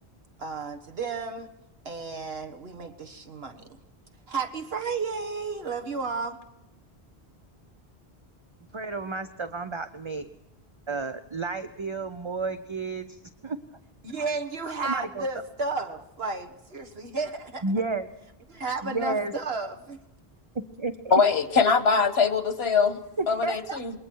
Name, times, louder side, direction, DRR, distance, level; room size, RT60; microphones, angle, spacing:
voice 1, 0.4-1.5 1.9-3.7 4.3-6.4 14.0-17.9 18.5-20.0, right 4 dB, 75° right, 1.7 m, -33 dB
voice 2, 8.7-10.3 10.9-13.6 14.8-15.2 17.6-18.1 18.8-19.3 20.8-21.2 23.2-23.8, right 3 dB, 30° right, 0.7 m, -31 dB
voice 3, 21.1-23.0 23.3-23.9, left 5 dB, 90° left, 1.6 m, -22 dB
27.5 x 22.0 x 4.7 m
omnidirectional pair, 1.0 m